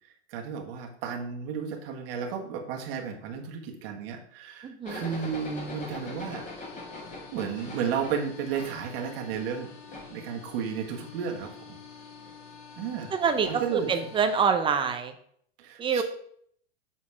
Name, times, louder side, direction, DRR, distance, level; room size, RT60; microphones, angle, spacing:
voice 1, 0.0-6.4 7.3-9.7 10.1-11.7 12.8-13.1 13.5-14.1 15.6-16.0, right 7 dB, 55° right, 1 dB, 1.7 m, -33 dB
voice 2, 4.6-5.0 13.2-13.5 13.9-15.1 15.8-16.0, right 6 dB, 15° right, 7 dB, 0.5 m, -25 dB
sound 1, 4.8-14.5, left 3 dB, 20° left, 1.7 m, -43 dB
7.4 x 4.1 x 4.8 m, 0.64 s
hypercardioid pair, 130°, 34 cm